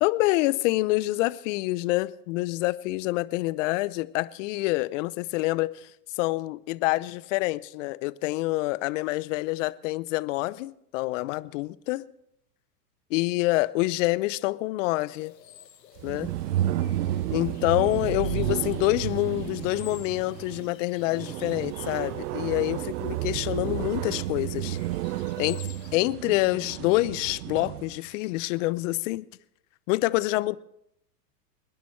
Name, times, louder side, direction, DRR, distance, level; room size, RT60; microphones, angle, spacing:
voice 1, 0.0-12.0 13.1-15.3 16.0-16.3 17.3-24.8 25.4-25.6 25.9-29.3 29.9-30.6, left 20 dB, 50° left, 0.7 m, -27 dB
sound 1, 15.2-26.0, left 10 dB, 85° left, 1.4 m, -52 dB
sound 2, 16.0-28.0, right 14 dB, 65° right, 0.6 m, -31 dB
28.0 x 10.0 x 3.2 m
hypercardioid pair, 105°, 49 cm